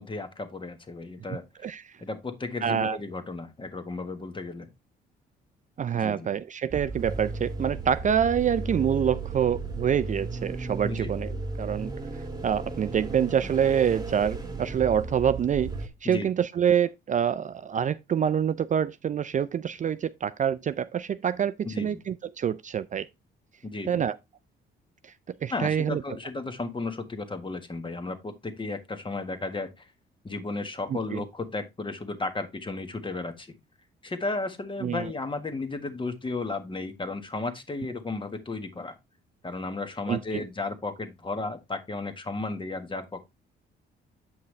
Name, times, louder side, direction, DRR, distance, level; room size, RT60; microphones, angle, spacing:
voice 1, 0.0-1.7 2.0-4.7 5.9-6.3 10.8-11.1 16.0-16.3 21.6-22.0 23.6-24.0 25.5-29.9 30.2-33.6 34.0-38.9 39.4-43.2, left 3 dB, 25° left, 1.4 m, -34 dB
voice 2, 1.3-1.8 2.6-3.0 5.8-11.3 11.6-11.9 12.4-15.7 16.0-23.1 23.9-24.2 25.0-25.1 25.4-26.0 30.9-31.2 34.8-35.1 40.1-40.4, right 8 dB, 40° right, 0.4 m, -26 dB
sound 1, 6.7-15.9, right 3 dB, 20° right, 1.4 m, -35 dB
8.2 x 5.5 x 3.2 m
cardioid pair, 90°, 20 cm